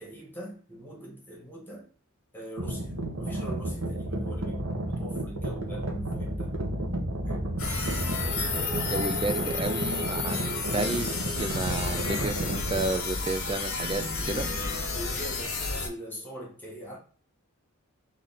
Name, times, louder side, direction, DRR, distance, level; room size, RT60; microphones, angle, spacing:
voice 1, 0.0-1.9 2.3-6.5 7.2-7.6 12.0-12.4 14.9-17.0, right 1 dB, 10° left, 1.3 m, -42 dB
sound 1, 2.6-12.9, right 1 dB, 70° right, 1.1 m, -32 dB
sound 2, 7.6-15.9, left 3 dB, 85° left, 1.3 m, -31 dB
voice 2, 8.9-14.5, right 2 dB, 25° right, 0.4 m, -32 dB
3.7 x 3.3 x 4.0 m
head